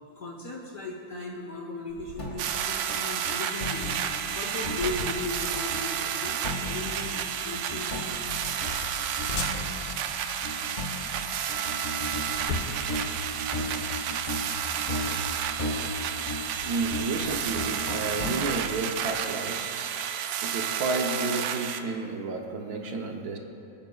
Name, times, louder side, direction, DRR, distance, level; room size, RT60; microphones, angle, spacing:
voice 1, 0.1-8.2 15.0-15.5, left 2 dB, 50° left, -1 dB, 1.2 m, -37 dB
sound 1, 1.9-17.6, left 4 dB, 75° left, 1.6 m, -42 dB
sound 2, 2.0-4.4 4.6-18.6, left 1 dB, 30° left, 1.4 m, -36 dB
sound 3, 2.4-21.8, right 8 dB, 85° right, 1.3 m, -31 dB
voice 2, 16.6-19.7 20.4-23.4, right 3 dB, 60° right, 2 dB, 1.3 m, -31 dB
25.5 x 8.8 x 2.3 m, 2.7 s
omnidirectional pair, 2.0 m